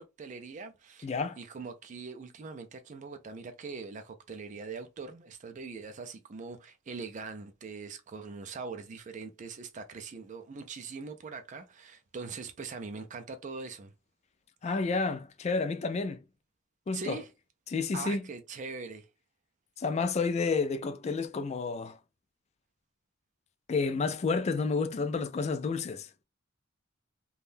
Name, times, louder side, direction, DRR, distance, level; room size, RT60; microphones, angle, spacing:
voice 1, 0.0-1.1 1.4-13.9 16.9-17.3 17.9-19.1, right 4 dB, 40° right, 0.4 m, -42 dB
voice 2, 1.0-1.4 14.6-16.2 16.9-17.2 17.7-18.2 19.8-22.0 23.7-26.1, left 4 dB, 35° left, 0.3 m, -30 dB
3.5 x 2.2 x 2.5 m
head